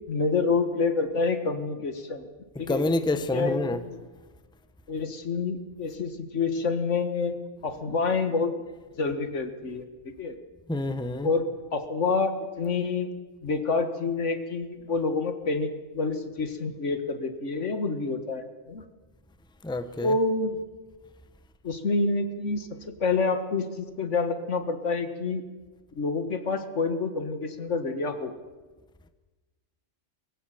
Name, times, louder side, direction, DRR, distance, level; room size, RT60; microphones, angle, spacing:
voice 1, 0.1-2.3 2.6-2.8 3.1-4.0 4.9-7.4 7.6-8.5 9.0-10.4 11.2-11.5 11.7-13.1 13.4-18.8 20.0-20.6 21.6-25.4 26.0-28.3, left 4 dB, 70° left, 2.0 m, -28 dB
voice 2, 2.7-3.8 10.7-11.3 19.6-20.1, left 2 dB, 5° left, 0.9 m, -27 dB
22.5 x 16.0 x 7.7 m
omnidirectional pair, 1.3 m